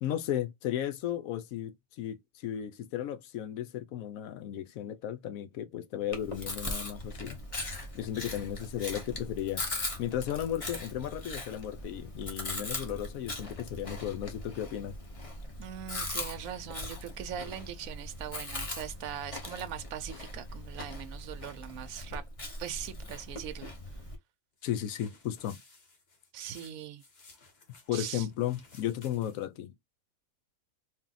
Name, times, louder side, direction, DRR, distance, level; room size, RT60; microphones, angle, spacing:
voice 1, 0.0-7.4 7.9-9.7 10.0-15.0 24.6-25.6 27.9-29.7, left 11 dB, 80° left, 1.0 m, -35 dB
Chewing mastication, 6.1-24.2, left 2 dB, 25° left, 0.9 m, -40 dB
voice 2, 15.6-22.2 22.6-23.7 26.3-27.0 27.9-28.3, right 10 dB, 75° right, 1.0 m, -41 dB
sound 1, 24.6-29.6, left 3 dB, 50° left, 1.4 m, -58 dB
3.5 x 2.6 x 3.8 m
omnidirectional pair, 1.5 m